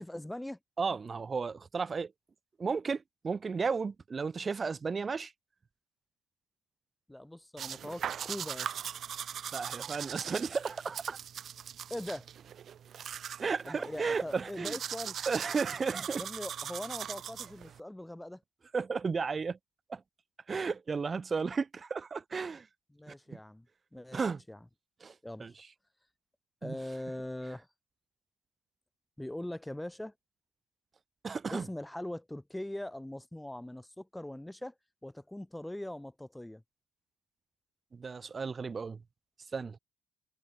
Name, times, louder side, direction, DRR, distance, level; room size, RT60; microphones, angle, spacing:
voice 1, 0.0-0.6 7.1-8.7 11.9-12.3 13.6-15.2 16.2-18.4 22.9-23.7 23.9-24.2 24.5-24.6 25.2-25.6 26.6-27.7 29.2-30.1 31.5-34.7 35.0-36.6, left 1 dB, 5° left, 7.9 m, -41 dB
voice 2, 0.8-2.1 2.6-5.3 9.5-11.2 13.4-14.8 15.3-16.2 18.7-19.6 19.9-20.0 20.5-22.7 23.1-23.2 24.1-24.4 25.0-25.1 25.4-25.5 26.6-26.8 31.2-31.7 37.9-39.0 39.5-39.8, right 5 dB, 30° right, 7.6 m, -33 dB
sound 1, 7.6-17.8, right 9 dB, 45° right, 6.1 m, -40 dB
figure-of-eight pair, 50°, 0 cm